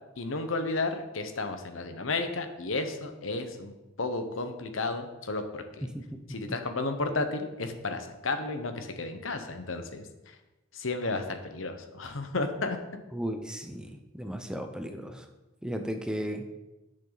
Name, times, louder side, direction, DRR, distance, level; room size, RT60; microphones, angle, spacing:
voice 1, 0.2-3.7 4.0-5.9 6.3-10.0 10.7-12.8, left 3 dB, 70° left, 7 dB, 1.1 m, -32 dB
voice 2, 13.1-15.2 15.6-16.4, equal, 5° right, 5 dB, 0.7 m, -35 dB
10.0 x 6.7 x 4.1 m, 1.0 s
head